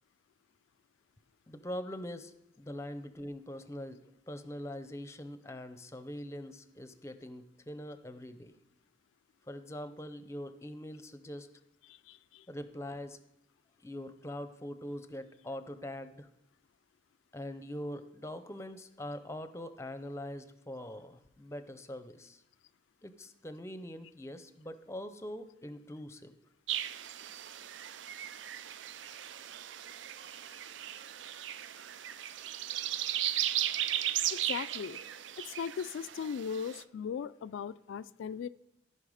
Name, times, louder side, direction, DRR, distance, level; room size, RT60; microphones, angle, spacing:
voice 1, 1.5-8.5 9.5-11.5 12.5-13.2 13.8-16.3 17.3-22.4 23.0-26.3, left 1 dB, 15° left, 11 dB, 0.6 m, -43 dB
voice 2, 11.9-12.4 34.3-35.0 35.5-38.5, left 7 dB, 90° left, 14 dB, 0.3 m, -38 dB
sound 1, 26.7-36.8, right 12 dB, 80° right, 0.4 m, -36 dB
15.0 x 5.6 x 4.9 m, 0.81 s
head